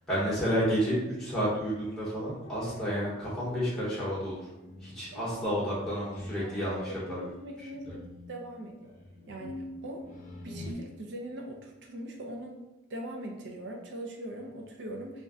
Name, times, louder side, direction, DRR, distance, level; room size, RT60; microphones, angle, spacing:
voice 1, 0.1-4.4 4.8-7.3 7.6-7.7, equal, 5° left, -9 dB, 0.9 m, -30 dB
sound 1, 2.4-7.2 7.8-10.7, left 1 dB, 40° left, 0.4 m, -46 dB
voice 2, 6.4-8.9 9.3-10.0 10.4-12.6 12.9-15.2, right 1 dB, 55° right, 1 dB, 0.4 m, -41 dB
2.5 x 2.1 x 3.5 m, 0.98 s
head